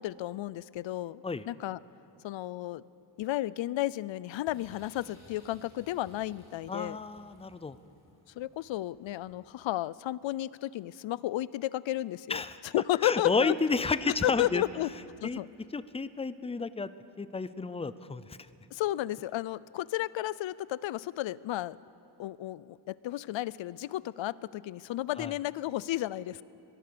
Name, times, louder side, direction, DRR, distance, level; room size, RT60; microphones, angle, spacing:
voice 1, 0.0-1.8 2.2-2.8 3.2-7.0 8.4-13.5 14.2-14.9 15.2-15.5 18.7-21.8 22.2-26.4, left 14 dB, 80° left, 20 dB, 0.6 m, -33 dB
sound 1, 4.4-9.6, left 1 dB, 35° left, 4.5 m, -58 dB
voice 2, 6.7-7.8 12.3-12.6 13.0-14.6 15.2-15.4 15.7-16.9 17.2-18.4 25.2-25.3, left 4 dB, 15° left, 15 dB, 0.4 m, -31 dB
22.5 x 22.0 x 6.9 m, 2.7 s
wide cardioid pair, 170°, 45 cm